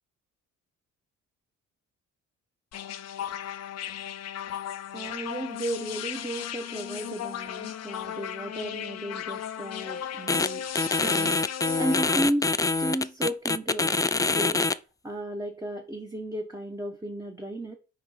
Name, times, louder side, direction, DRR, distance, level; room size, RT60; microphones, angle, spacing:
sound 1, 2.7-12.2, left 9 dB, 55° left, 0.8 m, -36 dB
voice 1, 4.9-10.7 11.0-12.5 12.8-14.0 14.3-14.6 15.0-17.7, right 1 dB, 10° right, 2 dB, 1.1 m, -34 dB
sound 2, 10.3-10.5 10.8-14.7, left 3 dB, 10° left, 0.4 m, -25 dB
5.9 x 4.7 x 5.0 m, 0.33 s
cardioid pair, 90°, 30 cm